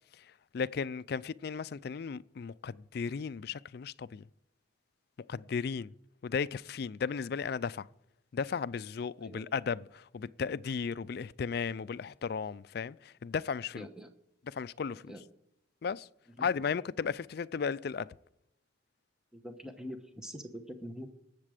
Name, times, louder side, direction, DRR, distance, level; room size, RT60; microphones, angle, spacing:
voice 1, 0.5-4.3 5.3-5.9 6.2-7.9 8.3-13.9 14.5-15.1 15.8-16.1 16.4-18.1, left 6 dB, 55° left, 0.4 m, -35 dB
voice 2, 9.2-9.5 13.7-14.1 14.9-15.2 16.4-16.5 19.3-21.1, equal, 5° right, 1.0 m, -44 dB
19.5 x 7.5 x 5.0 m
head